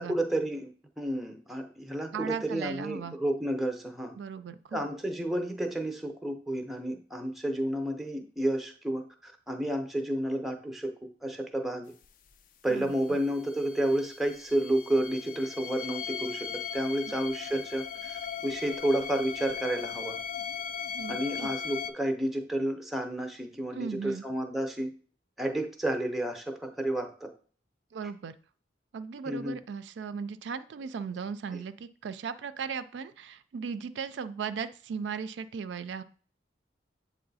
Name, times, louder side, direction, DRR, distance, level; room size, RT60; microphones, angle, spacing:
voice 1, 0.0-4.1 4.7-10.9 11.2-11.9 12.6-20.2 21.1-24.9 25.4-27.3 29.3-29.6 31.5-31.6, right 1 dB, ahead, 4 dB, 0.6 m, -31 dB
voice 2, 2.1-3.2 4.2-4.8 12.7-13.2 20.9-21.5 23.7-24.2 27.9-28.3 28.9-36.0, right 6 dB, 75° right, 12 dB, 0.4 m, -37 dB
sound 1, 12.0-12.1 12.3-12.4 12.8-21.9, left 7 dB, 45° left, 0.4 m, -38 dB
7.7 x 3.0 x 4.0 m, 0.42 s
head